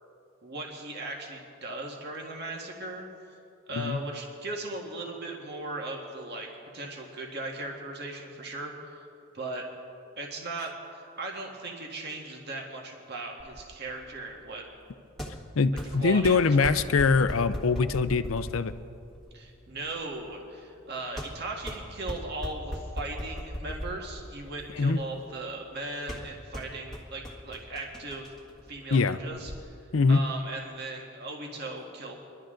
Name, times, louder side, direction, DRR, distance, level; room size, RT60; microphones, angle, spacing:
voice 1, 0.4-3.1 3.7-6.5 6.7-9.0 9.3-9.6 10.2-14.6 15.9-16.8 19.3-28.3 28.7-29.7 30.1-32.2, right 2 dB, 55° right, 0 dB, 1.8 m, -38 dB
sound 1, 13.4-29.6, equal, ahead, 1.7 m, -40 dB
voice 2, 15.6-18.7 24.8-25.0 28.9-29.2 29.9-30.2, left 4 dB, 80° left, 12 dB, 0.5 m, -23 dB
22.5 x 12.0 x 3.8 m, 2.5 s
head